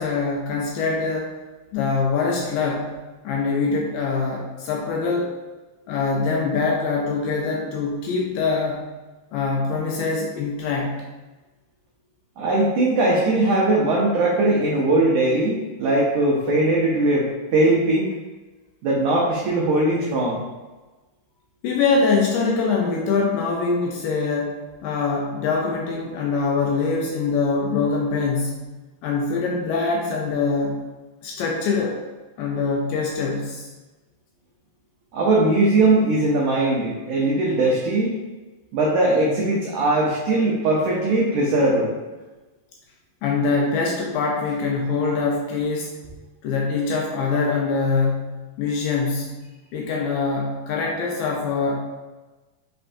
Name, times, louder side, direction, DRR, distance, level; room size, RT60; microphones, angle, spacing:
voice 1, 0.0-1.3 1.7-2.9 3.2-5.4 5.9-8.8 9.3-11.0 21.6-28.7 29.0-30.8 31.2-32.0 32.4-33.7 43.2-46.0 46.4-49.4 49.7-51.8, left 4 dB, 80° left, -1 dB, 2.0 m, -23 dB
voice 2, 12.4-18.1 18.8-20.4 35.1-38.1 38.7-41.9, right 2 dB, 85° right, -4 dB, 1.7 m, -20 dB
5.7 x 3.2 x 2.6 m, 1.2 s
omnidirectional pair, 4.3 m